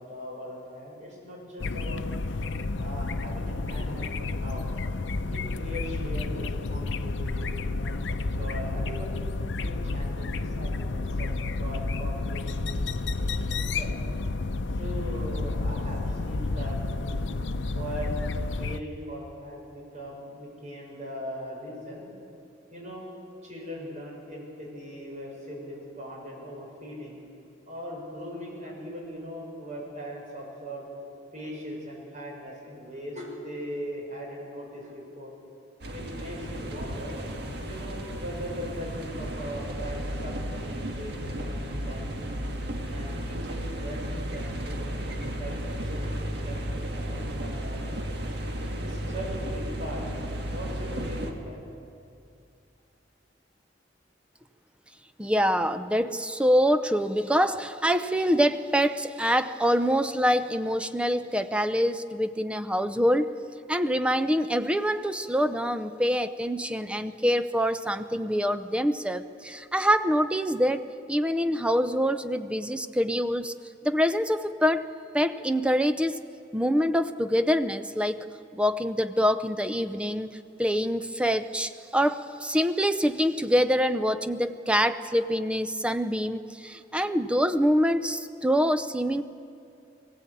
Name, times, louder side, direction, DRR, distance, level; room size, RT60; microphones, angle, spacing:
voice 1, 0.1-2.0 2.7-4.7 5.3-9.1 9.6-11.3 11.6-14.0 14.7-17.2 17.7-18.1 18.6-22.0 22.7-23.0 23.4-27.2 27.7-30.9 31.3-35.3 35.9-37.2 37.6-41.1 41.4-42.3 42.9-45.5 45.9-47.9 48.8-50.0 50.5-51.6, equal, 40° right, -3 dB, 6.8 m, -40 dB
sound 1, 1.6-18.8, left 3 dB, 80° left, 0.7 m, -30 dB
sound 2, 35.8-51.3, equal, 65° right, 1.8 m, -34 dB
voice 2, 55.2-63.3 63.7-73.5 73.8-74.9 75.1-76.2 76.5-78.2 78.5-80.3 80.6-89.2, equal, 5° right, 10 dB, 0.6 m, -25 dB
21.0 x 17.0 x 8.4 m, 2.5 s
head